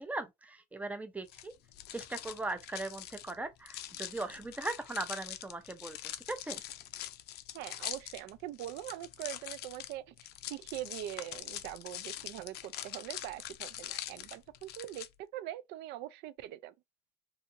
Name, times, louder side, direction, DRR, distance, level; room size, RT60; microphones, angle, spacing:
voice 1, 0.0-1.5 1.9-6.0 6.3-6.6, right 2 dB, 10° right, 0.6 m, -39 dB
sound 1, 1.3-15.1, left 13 dB, 70° left, 0.4 m, -44 dB
voice 2, 7.5-10.1 10.4-16.7, right 13 dB, 85° right, 0.4 m, -43 dB
2.7 x 2.5 x 2.5 m
cardioid pair, 110°, 17 cm